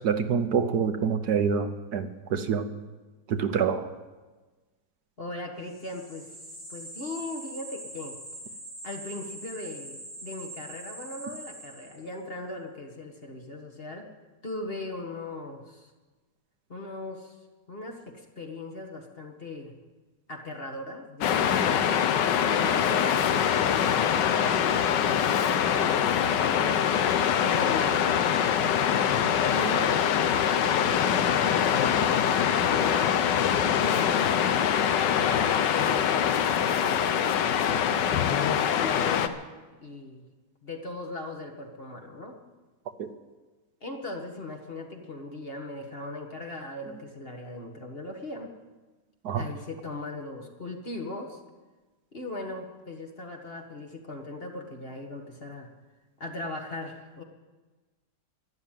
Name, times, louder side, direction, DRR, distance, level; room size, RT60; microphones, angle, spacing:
voice 1, 0.0-2.7 3.3-3.9 43.0-43.1 49.2-49.5, right 6 dB, 70° right, 8 dB, 1.4 m, -26 dB
voice 2, 5.2-6.3 6.7-8.2 8.8-14.1 14.4-15.9 16.7-17.4 17.7-19.7 20.3-21.8 22.6-26.9 27.4-28.2 29.4-31.9 32.6-33.2 33.8-36.3 36.8-39.4 39.8-40.2 40.6-42.4 43.8-48.5 49.3-51.4 52.1-55.7 56.2-57.2, left 2 dB, 35° left, 2 dB, 1.8 m, -38 dB
sound 1, 5.7-12.2, right 1 dB, 50° left, 4.6 m, -43 dB
Waves surf, 21.2-39.3, left 8 dB, 80° left, 1.5 m, -24 dB
12.5 x 12.0 x 9.1 m, 1.3 s
omnidirectional pair, 1.9 m